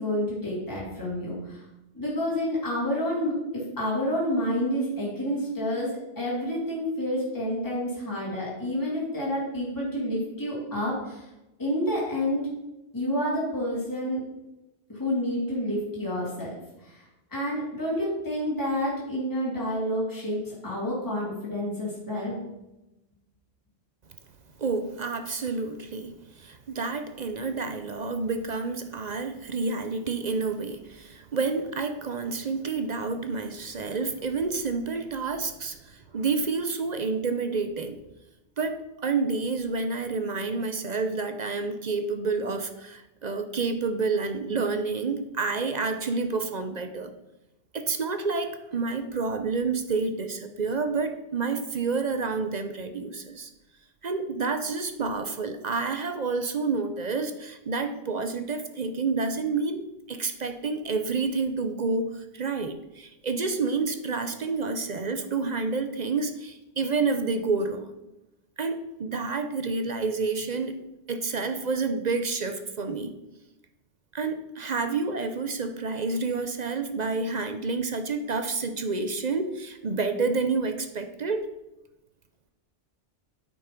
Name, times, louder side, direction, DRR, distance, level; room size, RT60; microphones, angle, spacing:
voice 1, 0.0-1.6 1.9-11.3 11.6-12.5 12.9-14.2 14.9-16.5 16.8-22.4, equal, 15° left, -6 dB, 2.6 m, -29 dB
voice 2, 24.6-38.0 38.6-47.1 47.7-53.5 54.0-67.9 68.6-70.8 71.1-73.2 74.1-81.5, right 4 dB, 45° right, 8 dB, 0.7 m, -29 dB
8.9 x 5.7 x 5.2 m, 0.97 s
omnidirectional pair, 1.2 m